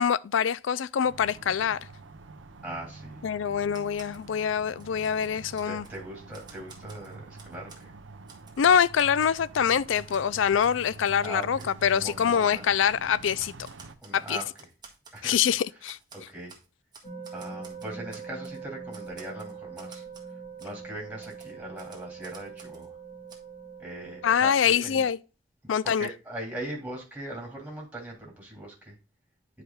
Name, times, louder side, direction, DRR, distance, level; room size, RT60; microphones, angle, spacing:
voice 1, 0.0-1.8 3.2-5.9 8.6-13.7 14.1-14.4 15.2-16.0 24.2-25.2 25.7-26.1, left 8 dB, 85° left, 0.4 m, -25 dB
sound 1, 1.0-13.9, right 3 dB, 85° right, 0.8 m, -46 dB
voice 2, 2.6-3.2 5.6-7.9 11.2-11.7 11.9-12.7 14.0-14.7 15.1-15.4 15.8-16.5 17.3-20.0 20.6-22.9 23.8-25.1 25.8-28.9, right 1 dB, 10° right, 3.1 m, -40 dB
Typewriter, 3.7-4.3 4.7-6.0 6.3-7.9 8.3-8.6 9.0-10.3 10.6-10.8 11.1-11.2 11.6-11.7 12.0-12.3 12.8-13.0 13.4-15.6 15.9-16.7 16.9-18.6 18.9-20.3 20.6-20.7 21.2-22.9 23.3-23.4, right 5 dB, 25° right, 1.6 m, -51 dB
sound 2, 17.0-24.4, right 5 dB, 20° left, 1.9 m, -42 dB
10.0 x 5.0 x 2.3 m
head